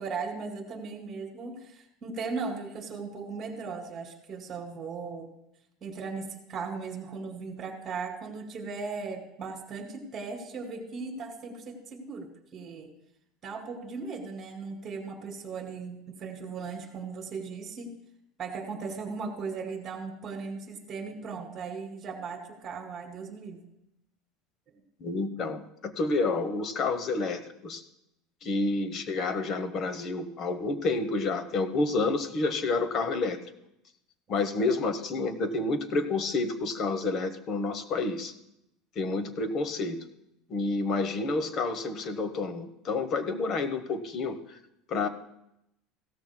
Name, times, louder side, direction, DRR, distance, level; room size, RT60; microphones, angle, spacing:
voice 1, 0.0-5.3 5.8-12.9 13.4-17.9 18.4-23.6 28.4-28.5, right 4 dB, 30° right, 3 dB, 2.6 m, -37 dB
voice 2, 25.0-27.8 28.4-33.4 34.3-38.3 39.0-40.0 40.5-44.4 44.9-45.1, left 3 dB, 40° left, 11 dB, 1.0 m, -29 dB
16.5 x 13.5 x 2.2 m, 0.81 s
supercardioid pair, 135°, 0 cm